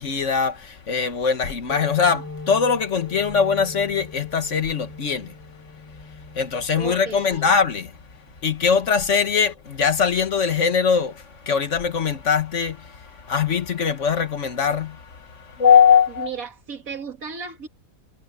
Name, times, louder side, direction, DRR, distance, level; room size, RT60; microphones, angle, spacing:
voice 1, 0.0-5.3 6.3-7.9 8.4-16.3, left 6 dB, 60° left, 1.6 m, -21 dB
sound 1, 1.7-9.0, left 3 dB, 10° left, 2.4 m, -41 dB
voice 2, 6.8-7.5 16.2-17.7, right 6 dB, 75° right, 2.5 m, -34 dB
omnidirectional pair, 1.5 m